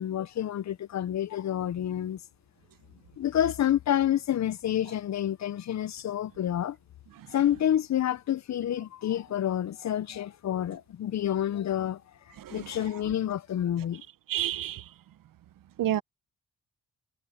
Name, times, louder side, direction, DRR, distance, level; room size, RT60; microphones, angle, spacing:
voice 1, 0.0-2.2 3.2-6.8 7.3-12.0 12.5-14.0, left 11 dB, 55° left, 0.6 m, -28 dB
voice 2, 14.3-14.8 15.8-16.0, right 12 dB, 70° right, 0.9 m, -28 dB
cardioid pair, 80°, 34 cm